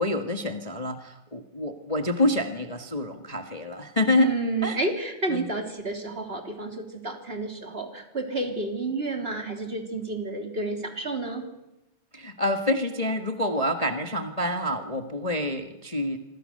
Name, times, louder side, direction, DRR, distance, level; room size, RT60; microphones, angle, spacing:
voice 1, 0.0-4.3 4.6-4.8 5.3-5.5 12.1-16.2, left 1 dB, 50° left, 5 dB, 0.4 m, -27 dB
voice 2, 4.1-11.4, right 3 dB, 20° right, 4 dB, 3.2 m, -30 dB
26.5 x 25.5 x 6.7 m, 0.98 s
omnidirectional pair, 3.7 m